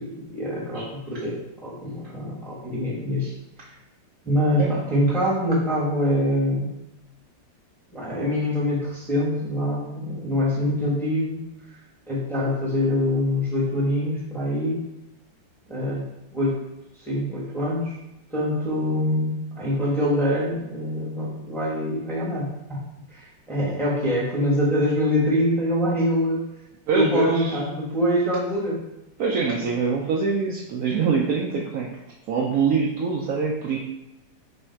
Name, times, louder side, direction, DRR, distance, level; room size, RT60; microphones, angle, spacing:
voice 1, 0.0-3.3 4.2-6.7 7.9-11.4 12.1-14.8 15.7-16.6 17.0-18.0 18.3-22.8 23.1-26.5 26.9-28.8, equal, ahead, -5 dB, 0.8 m, -24 dB
voice 2, 26.9-27.6 29.2-31.9 32.3-33.8, right 5 dB, 70° right, -2 dB, 0.9 m, -24 dB
3.5 x 3.2 x 4.4 m, 0.91 s
omnidirectional pair, 1.9 m